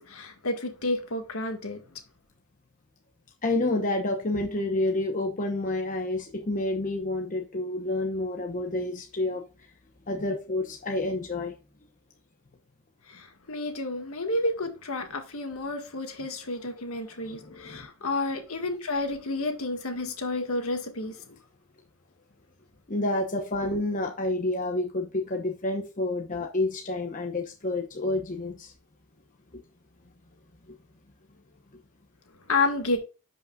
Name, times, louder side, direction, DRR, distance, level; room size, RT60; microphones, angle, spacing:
voice 1, 0.0-1.8 13.1-21.1 32.5-33.0, left 2 dB, 70° left, 1.7 m, -30 dB
voice 2, 3.4-9.4 10.1-11.5 17.2-17.9 22.9-28.7 30.7-30.8, left 2 dB, 35° left, 0.9 m, -29 dB
11.0 x 5.5 x 2.4 m
head